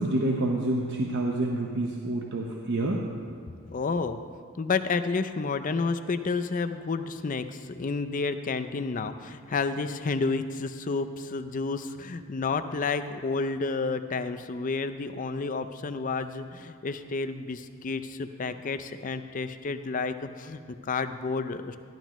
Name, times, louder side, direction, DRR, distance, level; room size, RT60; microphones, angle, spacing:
voice 1, 0.0-3.0, right 2 dB, 55° right, -1 dB, 0.8 m, -28 dB
voice 2, 3.7-4.2 4.6-21.8, left 4 dB, 40° left, 9 dB, 0.4 m, -30 dB
13.0 x 12.0 x 3.0 m, 2.2 s
head